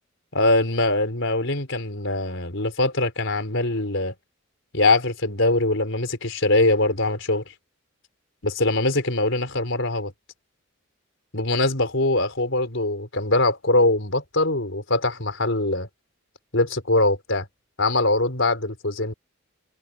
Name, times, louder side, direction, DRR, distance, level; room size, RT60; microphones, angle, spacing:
voice 1, 0.3-4.1 4.7-7.4 8.4-10.1 11.3-15.9 16.5-17.5 17.8-19.1, left 2 dB, 65° left, 4.6 m, -22 dB
head